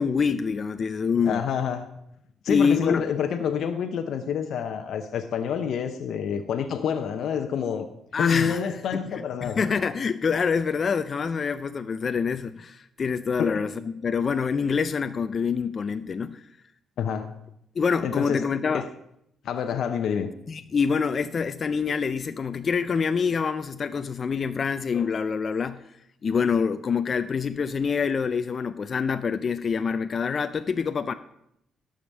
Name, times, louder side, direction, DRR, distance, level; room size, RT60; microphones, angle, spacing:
voice 1, 0.0-1.4 2.5-3.0 8.1-16.4 17.8-18.9 20.5-25.8 26.2-31.1, left 6 dB, 45° left, 10 dB, 0.5 m, -26 dB
voice 2, 1.2-1.9 2.4-7.9 8.2-9.6 13.4-13.7 17.0-17.4 18.0-18.4 18.7-18.8 19.4-20.3, left 7 dB, 70° left, 6 dB, 0.8 m, -28 dB
12.5 x 5.1 x 7.3 m, 0.77 s
cardioid pair, 90°, 0 cm